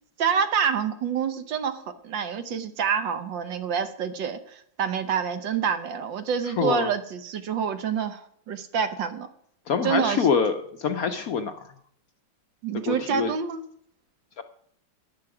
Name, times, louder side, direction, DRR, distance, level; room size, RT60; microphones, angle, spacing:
voice 1, 0.2-9.3 9.8-10.3 12.6-13.6, right 7 dB, 70° right, 10 dB, 1.7 m, -27 dB
voice 2, 6.6-6.9 9.7-11.6 12.9-13.3 14.4-14.5, left 6 dB, 65° left, 8 dB, 0.9 m, -25 dB
13.0 x 9.6 x 4.9 m, 0.64 s
omnidirectional pair, 2.1 m